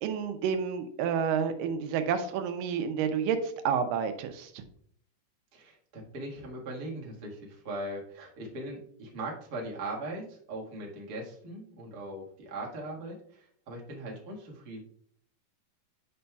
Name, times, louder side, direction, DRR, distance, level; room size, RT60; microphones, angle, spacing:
voice 1, 0.0-4.6, right 7 dB, 85° right, 8 dB, 2.4 m, -30 dB
voice 2, 5.5-14.8, right 1 dB, 40° right, -2 dB, 1.4 m, -40 dB
9.4 x 5.3 x 2.3 m, 0.63 s
omnidirectional pair, 3.9 m